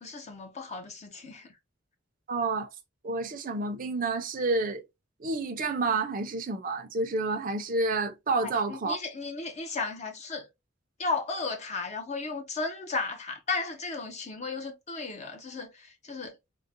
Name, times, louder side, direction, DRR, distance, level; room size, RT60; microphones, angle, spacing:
voice 1, 0.0-1.5 8.4-10.5 11.0-16.4, left 3 dB, 35° left, 0.6 m, -34 dB
voice 2, 2.3-2.7 3.0-4.8 5.2-9.0, right 3 dB, 45° right, 0.6 m, -29 dB
3.7 x 2.1 x 2.7 m
head